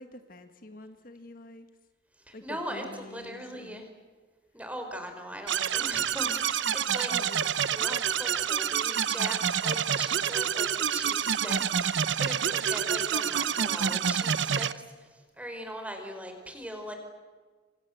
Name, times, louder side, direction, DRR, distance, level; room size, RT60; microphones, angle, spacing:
voice 1, 0.0-1.7 2.3-3.9 7.1-7.5 11.4-11.7, left 2 dB, 50° left, 8 dB, 1.8 m, -46 dB
voice 2, 2.2-3.9 4.5-16.9, equal, 10° right, 5 dB, 4.7 m, -40 dB
sound 1, 5.5-14.7, right 8 dB, 85° right, 0.8 m, -28 dB
28.0 x 26.0 x 8.0 m, 1.4 s
head